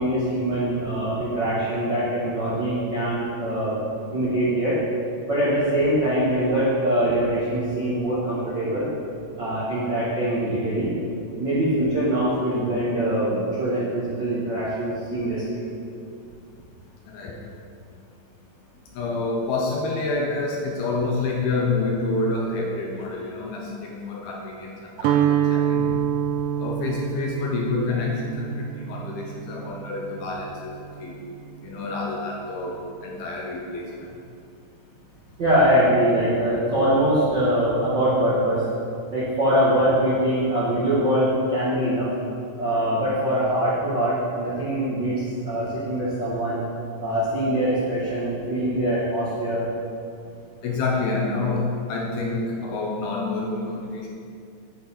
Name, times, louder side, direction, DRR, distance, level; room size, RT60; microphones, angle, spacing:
voice 1, 0.0-3.8 4.1-4.8 5.3-8.9 9.4-10.9 11.4-15.6 35.4-38.6 39.1-42.1 42.6-46.6 47.0-49.7, right 1 dB, 55° right, -9 dB, 1.2 m, -23 dB
voice 2, 17.1-17.4 18.9-25.9 26.6-30.7 31.0-31.2 31.6-34.2 50.6-54.1, left 3 dB, 75° left, 0 dB, 2.5 m, -28 dB
Guitar, 25.0-31.0, right 9 dB, 90° right, 2.9 m, -26 dB
10.0 x 8.9 x 4.2 m, 2.4 s
omnidirectional pair, 5.0 m